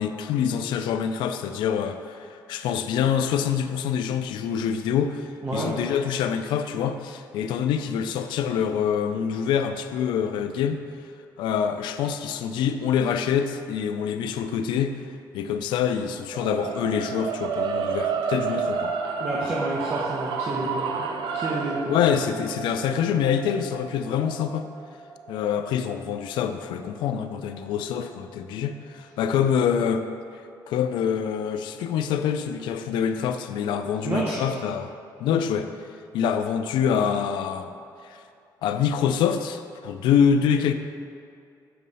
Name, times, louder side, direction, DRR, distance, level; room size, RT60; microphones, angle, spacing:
voice 1, 0.0-10.8 11.4-14.9 15.3-18.9 21.9-24.7 25.3-30.0 30.7-34.9 35.2-35.7 36.1-37.7 38.0-38.2 38.6-40.7, left 8 dB, 90° left, 8 dB, 0.4 m, -25 dB
voice 2, 5.4-5.7 19.2-21.1 21.3-22.0 34.0-34.4, right 1 dB, 30° right, -4 dB, 0.8 m, -29 dB
sound 1, 16.3-26.5, right 5 dB, 85° right, 0.4 m, -31 dB
6.9 x 3.1 x 5.4 m, 2.5 s
cardioid pair, 140°, 8 cm